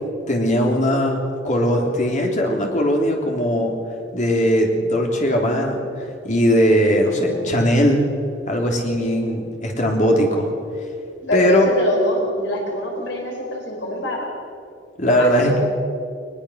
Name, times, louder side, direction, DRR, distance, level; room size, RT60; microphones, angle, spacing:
voice 1, 0.3-3.7 4.1-5.8 6.2-8.0 8.5-10.5 11.3-11.7 15.0-15.6, equal, 40° left, 1 dB, 3.4 m, -19 dB
voice 2, 7.1-7.7 11.2-14.3 15.1-15.6, left 1 dB, 65° left, 0 dB, 4.8 m, -25 dB
21.0 x 20.5 x 6.4 m, 2.4 s
head